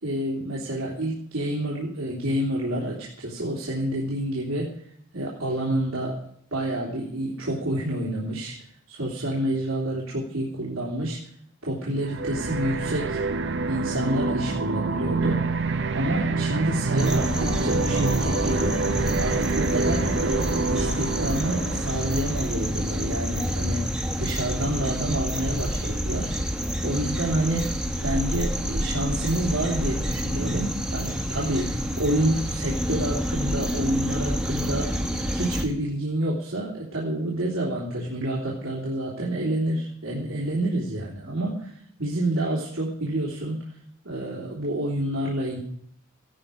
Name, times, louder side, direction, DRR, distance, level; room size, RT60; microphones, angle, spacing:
voice 1, 0.0-4.7 5.1-6.2 6.5-8.5 8.9-11.3 11.6-13.2 13.7-15.4 15.9-18.8 19.2-26.3 26.8-27.7 28.0-41.7 42.0-43.6 44.0-45.6, right 1 dB, 90° right, -5 dB, 3.3 m, -28 dB
sound 1, 12.0-22.6, right 3 dB, 60° right, 0.9 m, -27 dB
sound 2, 17.0-35.7, equal, 5° right, 1.6 m, -28 dB
16.5 x 12.5 x 5.3 m, 0.65 s
head